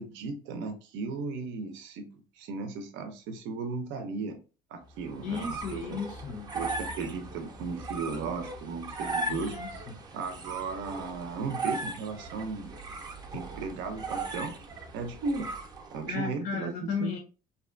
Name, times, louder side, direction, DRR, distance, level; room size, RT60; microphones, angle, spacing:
voice 1, 0.0-2.1 2.4-4.4 4.7-6.0 6.5-9.5 10.1-12.7 13.3-14.5 14.9-15.5 15.9-17.1, right 4 dB, 80° right, 6 dB, 0.5 m, -36 dB
sound 1, 5.0-16.1, right 2 dB, 20° right, 0.5 m, -38 dB
voice 2, 5.2-6.5 9.3-9.9 16.1-17.2, left 5 dB, 50° left, 3 dB, 0.5 m, -35 dB
2.6 x 2.2 x 2.4 m, 0.35 s
cardioid pair, 135°, 19 cm